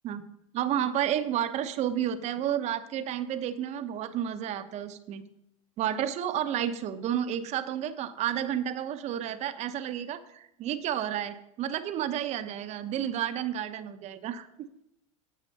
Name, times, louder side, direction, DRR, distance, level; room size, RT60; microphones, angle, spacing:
voice 1, 0.5-5.2 5.8-14.5, right 10 dB, 40° right, 11 dB, 1.0 m, -31 dB
9.5 x 7.4 x 5.4 m, 0.80 s
hypercardioid pair, 95°, 17 cm